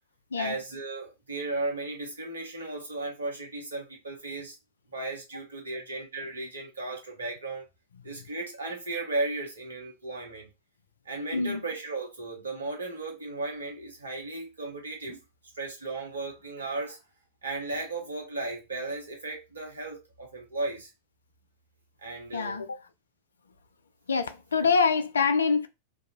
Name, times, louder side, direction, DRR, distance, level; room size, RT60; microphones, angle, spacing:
voice 1, 0.4-4.6 4.9-7.7 8.0-10.5 11.0-15.2 15.5-17.0 17.4-20.9 22.0-22.6, right 2 dB, 75° right, 0.9 m, -35 dB
voice 2, 11.3-11.6 22.3-22.7 24.1-25.7, left 5 dB, 70° left, 0.3 m, -25 dB
2.5 x 2.3 x 2.8 m
figure-of-eight pair, 90°, 0 cm